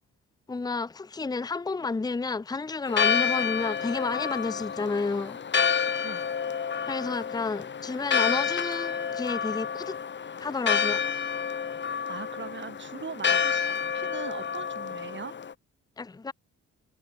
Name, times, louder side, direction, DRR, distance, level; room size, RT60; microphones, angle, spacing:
voice 1, 0.5-5.4 6.9-10.0 10.4-11.0 16.0-16.3, left 4 dB, 15° left, 0.7 m, -31 dB
Church bell, 2.9-15.5, left 6 dB, 40° left, 1.6 m, -29 dB
voice 2, 12.1-15.3, right 6 dB, 40° right, 3.9 m, -40 dB
cardioid pair, 90°, 30 cm